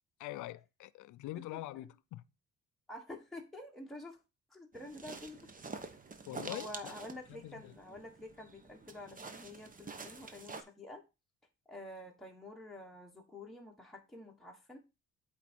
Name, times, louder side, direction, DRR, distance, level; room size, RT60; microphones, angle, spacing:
voice 1, 0.2-2.2 6.3-6.9 7.3-7.7, left 16 dB, 75° left, 0.5 m, -44 dB
voice 2, 2.9-4.2 4.5-5.5 6.5-11.0 11.7-14.8, left 1 dB, ahead, 1.3 m, -48 dB
sound 1, 4.7-10.6, right 4 dB, 25° right, 1.0 m, -48 dB
8.3 x 3.6 x 4.3 m
cardioid pair, 90°, 30 cm